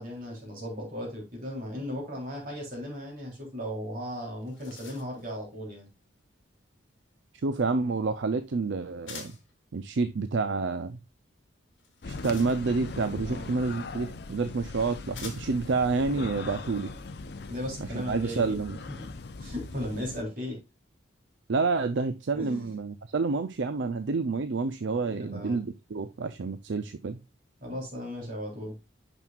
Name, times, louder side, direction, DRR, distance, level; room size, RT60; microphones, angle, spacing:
voice 1, 0.0-5.9 13.2-13.5 17.5-18.6 19.0-19.1 19.4-20.6 22.3-22.6 25.0-25.6 27.6-28.7, equal, 45° right, -1 dB, 3.4 m, -36 dB
sound 1, 3.9-4.0 4.3-5.3 9.1-9.5 11.8-12.9 14.0-14.1 15.1-15.7, left 6 dB, 80° left, 1.9 m, -46 dB
voice 2, 7.4-9.3 9.7-11.0 12.1-16.9 17.9-18.8 21.5-27.2, right 4 dB, 65° right, 10 dB, 0.5 m, -29 dB
sound 2, 12.0-20.2, left 3 dB, 55° left, 0.6 m, -40 dB
9.1 x 6.1 x 2.4 m, 0.24 s
head